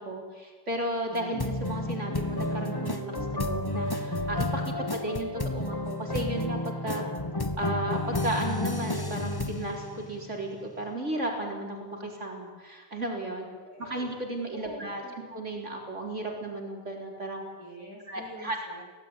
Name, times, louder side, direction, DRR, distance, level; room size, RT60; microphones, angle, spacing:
voice 1, 0.0-7.0 7.6-13.5 13.8-15.0 15.3-17.4 18.1-18.6, right 1 dB, 40° right, 1 dB, 4.4 m, -34 dB
sound 1, 1.1-10.7, left 2 dB, 15° left, 1.1 m, -31 dB
voice 2, 13.4-13.9 14.5-15.1 17.6-18.8, left 1 dB, 50° left, 0 dB, 5.4 m, -45 dB
24.5 x 17.5 x 9.8 m, 1.4 s
omnidirectional pair, 2.0 m